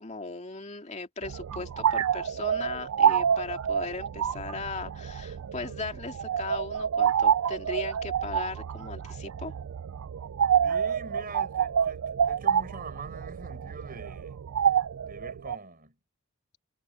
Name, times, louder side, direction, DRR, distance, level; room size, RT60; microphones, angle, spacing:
voice 1, 0.0-9.5, left 3 dB, 35° left, 2.5 m, -38 dB
sound 1, 1.2-15.6, right 8 dB, 85° right, 0.4 m, -28 dB
voice 2, 10.6-14.4 15.0-16.0, right 3 dB, 45° right, 6.1 m, -44 dB
head